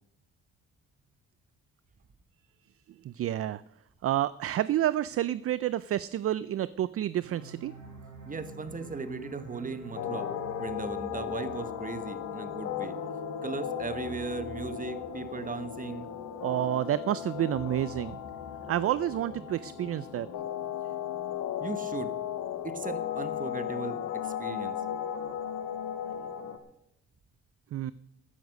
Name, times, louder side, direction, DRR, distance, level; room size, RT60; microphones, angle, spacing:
voice 1, 3.0-3.6 4.0-7.7 16.4-18.2 18.7-20.3 27.7-27.9, right 12 dB, 50° right, 18 dB, 0.4 m, -29 dB
sound 1, 7.2-12.6, right 5 dB, 75° right, 5.4 m, -49 dB
sound 2, 7.6-20.3, left 1 dB, 10° right, 3.8 m, -50 dB
voice 2, 8.3-10.3 10.6-13.0 13.4-16.0 21.6-22.1 22.6-24.8, right 4 dB, 25° right, 12 dB, 1.2 m, -37 dB
sound 3, 10.0-26.6, left 9 dB, 80° left, 1.4 m, -36 dB
13.5 x 9.4 x 6.4 m, 0.79 s
cardioid pair, 90°, 30 cm